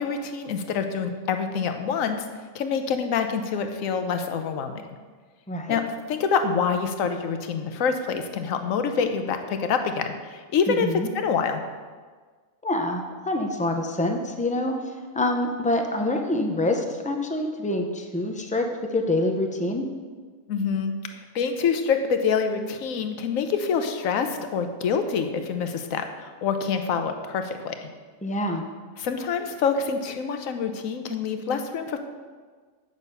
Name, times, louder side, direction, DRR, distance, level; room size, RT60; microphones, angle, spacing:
voice 1, 0.0-2.2 2.5-4.8 5.7-5.8 6.1-10.9 11.1-11.6 20.5-21.0 21.3-27.8 29.0-32.0, left 6 dB, 75° left, 7 dB, 1.1 m, -26 dB
voice 2, 5.5-5.8 10.7-11.1 12.6-14.7 15.1-19.8 28.2-28.6, left 1 dB, 10° left, 3 dB, 0.4 m, -26 dB
8.5 x 6.6 x 5.4 m, 1.5 s
omnidirectional pair, 1.5 m